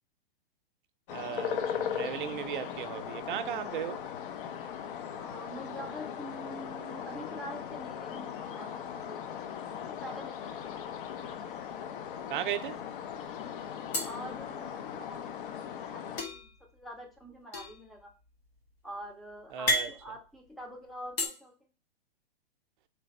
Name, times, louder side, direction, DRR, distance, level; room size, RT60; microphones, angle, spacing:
sound 1, 1.1-16.2, left 8 dB, 60° left, 0.6 m, -38 dB
voice 1, 1.1-4.0 12.3-12.8 19.5-19.9, right 10 dB, 55° right, 0.5 m, -36 dB
voice 2, 5.2-9.4 9.7-10.7 14.0-18.1 18.8-21.5, right 1 dB, ahead, 0.4 m, -45 dB
sound 2, 10.6-11.5 11.8-12.0 12.3-13.0 13.9-15.2 16.2-21.3, left 1 dB, 90° left, 1.7 m, -36 dB
3.3 x 3.3 x 4.1 m
hypercardioid pair, 140°, 30 cm